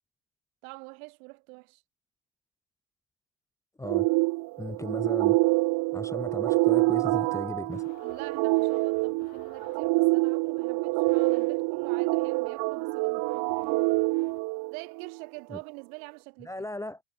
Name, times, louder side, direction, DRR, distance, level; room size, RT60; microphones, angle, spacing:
voice 1, 0.6-1.8 8.0-13.8 14.7-16.5, right 30 dB, 70° right, 4.5 m, -45 dB
sound 1, 3.8-15.2, right 25 dB, 55° right, 1.0 m, -26 dB
voice 2, 4.6-5.5 5.9-7.8 15.5-15.6 16.5-17.0, left 2 dB, 5° left, 0.9 m, -37 dB
sound 2, 7.7-14.4, left 27 dB, 70° left, 5.1 m, -56 dB
supercardioid pair, 115°, 43 cm